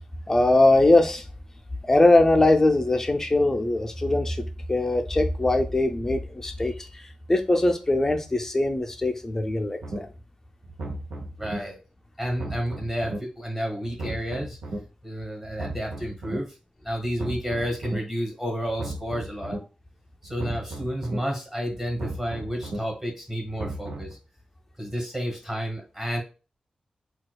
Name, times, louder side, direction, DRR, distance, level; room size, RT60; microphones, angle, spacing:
voice 1, 0.3-1.2 1.8-7.0 7.3-10.1, left 2 dB, 20° left, 0.4 m, -21 dB
sound 1, 9.8-10.0 10.6-11.6 12.2-13.2 13.8-14.8 15.4-16.4 17.0-18.0 18.6-19.6 20.2-21.2 21.8-22.8 23.4-24.1, right 2 dB, 85° right, 0.7 m, -35 dB
voice 2, 11.4-11.8 12.2-14.6 15.0-16.6 16.8-19.6 20.2-24.2 24.8-26.2, equal, 15° right, 1.1 m, -31 dB
4.0 x 2.3 x 2.3 m
wide cardioid pair, 145°, 2 cm